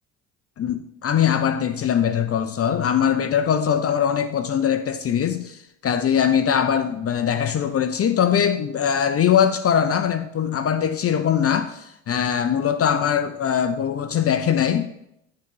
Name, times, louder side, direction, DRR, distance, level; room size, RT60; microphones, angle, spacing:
voice 1, 0.6-14.9, left 8 dB, 40° left, 0.6 m, -21 dB
8.7 x 3.9 x 5.5 m
hypercardioid pair, 50°, 38 cm